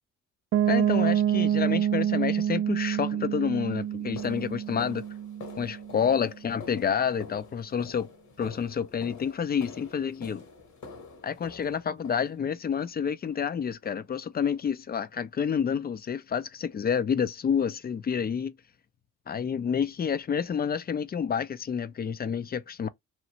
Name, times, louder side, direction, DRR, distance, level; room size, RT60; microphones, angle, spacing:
Piano, 0.5-6.2, right 10 dB, 45° right, 0.4 m, -27 dB
voice 1, 0.7-5.0 5.6-8.1 8.4-10.4 11.2-18.6 19.3-22.9, left 7 dB, 30° left, 0.3 m, -29 dB
sound 1, 2.8-3.0 3.5-12.7 13.2-13.6 13.8-14.1 14.4-14.6 15.1-15.2 15.7-15.8, left 4 dB, 55° left, 1.2 m, -47 dB
3.1 x 2.4 x 2.8 m
supercardioid pair, 70°, 34 cm